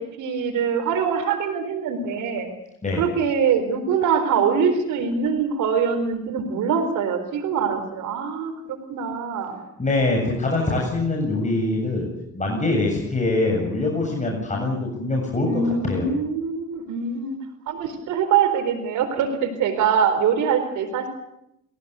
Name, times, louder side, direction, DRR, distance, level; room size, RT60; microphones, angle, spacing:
voice 1, 0.0-2.5 2.9-9.6 15.4-17.4 17.7-21.1, right 6 dB, 85° right, 8 dB, 4.3 m, -23 dB
voice 2, 9.8-12.1 12.3-16.1, left 2 dB, 25° left, -1 dB, 7.8 m, -23 dB
30.0 x 16.5 x 8.3 m, 0.80 s
cardioid pair, 90°, 30 cm